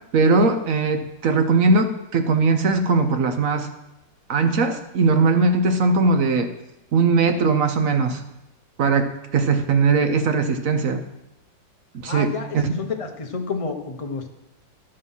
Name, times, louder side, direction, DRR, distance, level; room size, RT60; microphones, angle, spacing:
voice 1, 0.1-3.7 4.3-6.5 6.9-8.2 8.8-11.0 12.0-12.7, right 4 dB, 55° right, 8 dB, 1.1 m, -20 dB
voice 2, 12.1-14.3, left 5 dB, 30° left, 3 dB, 0.7 m, -30 dB
11.0 x 7.7 x 5.6 m, 0.91 s
omnidirectional pair, 2.0 m